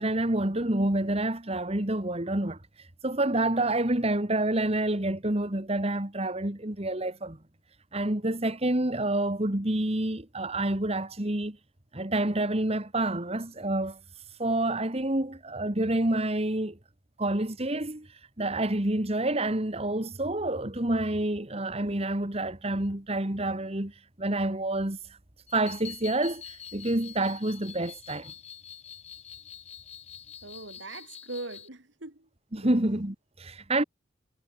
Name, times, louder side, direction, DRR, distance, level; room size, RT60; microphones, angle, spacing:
voice 1, 0.0-7.4 7.9-11.6 11.9-14.0 14.4-16.8 17.2-18.1 18.4-23.9 24.2-25.0 25.5-28.3 32.5-33.8, right 1 dB, 30° right, 1.8 m, -28 dB
sound 1, 25.5-31.7, left 8 dB, 35° left, 2.5 m, -46 dB
voice 2, 30.4-32.3 32.6-32.8, right 2 dB, 65° right, 2.7 m, -41 dB
head